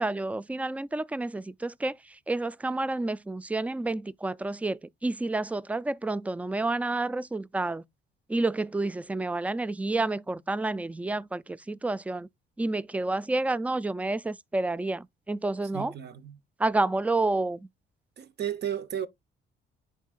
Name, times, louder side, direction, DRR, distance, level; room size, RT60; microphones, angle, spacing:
voice 1, 0.0-2.0 2.3-7.8 8.3-12.3 12.6-15.9 16.6-17.7, right 2 dB, 5° right, 0.3 m, -29 dB
voice 2, 15.7-16.4 18.2-19.1, right 9 dB, 55° right, 0.8 m, -33 dB
11.0 x 3.7 x 2.4 m
cardioid pair, 90°, 20 cm